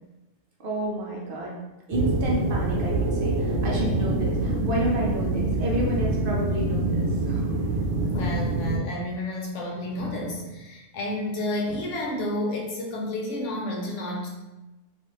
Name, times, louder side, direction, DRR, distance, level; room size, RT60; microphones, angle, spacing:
voice 1, 0.6-1.6 1.9-7.5, equal, 60° right, -3 dB, 0.6 m, -30 dB
sound 1, 1.9-8.8, right 2 dB, 85° right, 0.9 m, -25 dB
voice 2, 8.0-14.3, left 1 dB, 85° left, -1 dB, 1.0 m, -30 dB
2.4 x 2.4 x 2.9 m, 1.1 s
omnidirectional pair, 1.2 m